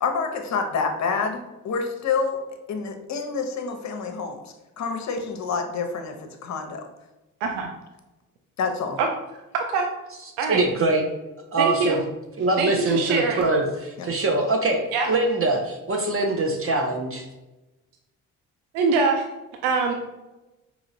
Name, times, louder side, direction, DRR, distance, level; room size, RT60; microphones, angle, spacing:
voice 1, 0.0-2.4 2.7-6.1 6.4-6.9 8.6-9.0 14.0-14.1, left 5 dB, 40° left, 6 dB, 0.8 m, -28 dB
voice 2, 9.5-9.9 10.4-10.6 11.6-12.0 12.6-13.5 14.9-15.1 18.7-19.2 19.6-19.9, right 4 dB, 75° right, 3 dB, 0.6 m, -23 dB
voice 3, 10.5-11.0 11.5-12.0 12.4-17.3, right 2 dB, 30° right, 2 dB, 0.8 m, -23 dB
4.9 x 3.0 x 2.6 m, 1.0 s
hypercardioid pair, 40°, 43 cm